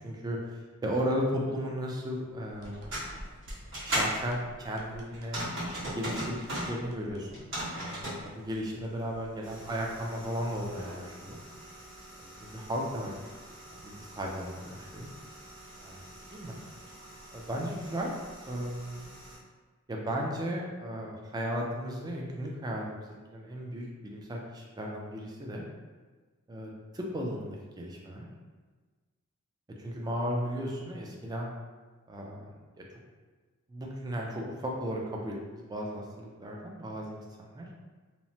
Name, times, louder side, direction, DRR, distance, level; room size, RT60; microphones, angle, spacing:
voice 1, 0.0-2.9 3.8-5.4 5.9-7.4 7.7-11.4 12.2-13.1 13.7-15.1 16.3-16.6 17.3-18.1 18.5-19.1 19.9-25.6 26.5-28.3 29.8-31.5 32.1-32.8 33.7-37.7, equal, 20° right, -1 dB, 0.3 m, -35 dB
sound 1, 2.5-11.0, equal, 85° right, 0.5 m, -51 dB
sound 2, 2.6-4.1 5.1-6.8 7.2-8.2 9.4-19.4, equal, 60° right, 1.3 m, -40 dB
2.9 x 2.0 x 2.7 m, 1.4 s
head